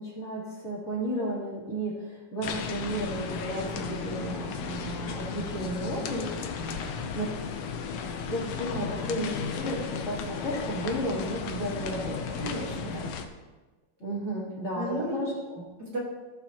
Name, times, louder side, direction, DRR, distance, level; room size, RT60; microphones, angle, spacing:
voice 1, 0.0-6.2 7.1-7.3 8.3-12.4 14.0-15.6, right 1 dB, 30° left, -7 dB, 3.6 m, -33 dB
sound 1, 2.4-13.3, left 5 dB, 85° left, 1.8 m, -34 dB
voice 2, 6.0-6.3 12.4-13.1 14.7-15.4 15.8-16.0, right 1 dB, 50° right, -4 dB, 2.3 m, -34 dB
17.5 x 7.0 x 3.0 m, 1.2 s
omnidirectional pair, 2.4 m